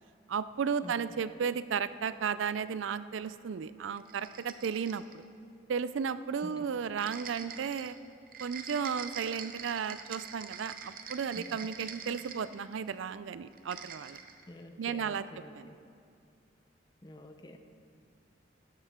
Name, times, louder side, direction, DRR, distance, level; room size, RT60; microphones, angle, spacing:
voice 1, 0.3-5.2 5.7-8.0 8.4-14.2 14.8-15.2 15.6-15.7, right 6 dB, 80° right, 14 dB, 0.4 m, -34 dB
voice 2, 0.8-1.2 6.4-6.7 7.4-7.5 11.3-11.5 14.5-15.8 17.0-17.6, left 1 dB, 20° left, 6 dB, 0.7 m, -48 dB
sound 1, 4.0-5.2 7.0-12.9 13.5-14.4, right 7 dB, 45° right, 0.7 m, -45 dB
16.5 x 12.5 x 3.7 m, 2.4 s
head